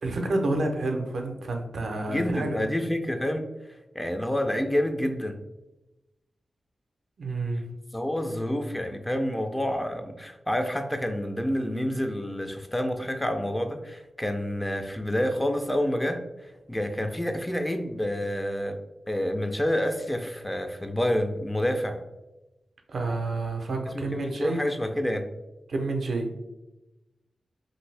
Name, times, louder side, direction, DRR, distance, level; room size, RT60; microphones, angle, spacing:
voice 1, 0.0-2.7 7.2-7.6 22.9-24.6 25.7-26.3, right 2 dB, 75° right, 3 dB, 0.5 m, -29 dB
voice 2, 2.1-3.4 3.9-5.4 7.9-16.2 16.7-18.8 19.1-22.0 23.9-25.3, left 1 dB, 15° left, 6 dB, 0.4 m, -28 dB
2.6 x 2.5 x 3.2 m, 1.0 s
cardioid pair, 65°, 0 cm